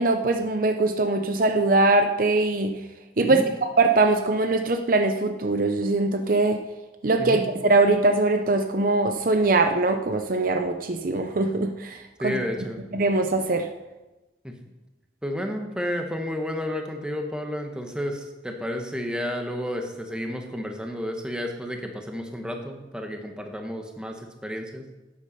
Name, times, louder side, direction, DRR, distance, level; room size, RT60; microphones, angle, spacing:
voice 1, 0.0-2.8 3.2-6.6 7.0-12.4 12.9-13.7, right 2 dB, 50° right, 6 dB, 0.7 m, -22 dB
voice 2, 12.2-12.9 14.4-14.5 15.2-24.9, equal, 5° right, 3 dB, 1.2 m, -31 dB
12.0 x 8.6 x 5.4 m, 1.1 s
head